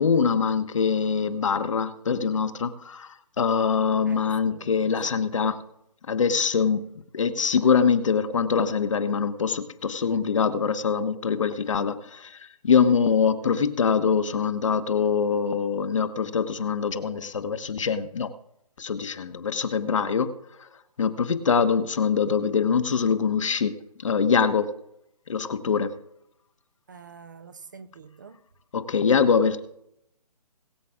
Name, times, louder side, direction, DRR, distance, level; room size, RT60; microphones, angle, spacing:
voice 1, 0.0-5.6 6.1-6.9 7.1-18.3 18.8-20.7 21.0-24.7 25.3-26.0 28.7-29.6, left 6 dB, 50° left, 1.2 m, -24 dB
voice 2, 4.1-5.0 13.5-13.6 26.9-28.4, right 6 dB, 30° right, 0.7 m, -47 dB
21.5 x 7.5 x 3.7 m
hypercardioid pair, 170°, 21 cm